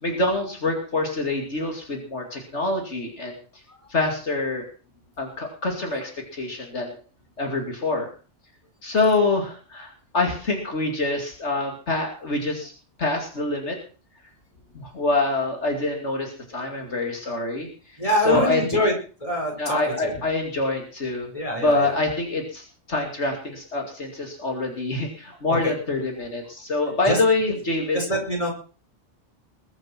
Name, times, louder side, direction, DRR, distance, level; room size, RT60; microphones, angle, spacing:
voice 1, 0.0-3.4 3.9-4.6 5.2-7.0 7.4-8.1 8.8-12.7 13.0-13.8 14.7-18.0 18.2-18.6 19.6-21.3 21.6-28.0, left 2 dB, 75° left, 2 dB, 3.0 m, -25 dB
voice 2, 18.0-18.9 19.2-20.1 21.3-21.9 25.5-25.7 27.1-27.2 27.9-28.5, equal, 30° left, 1 dB, 5.2 m, -24 dB
21.5 x 7.9 x 6.0 m, 0.38 s
omnidirectional pair, 1.2 m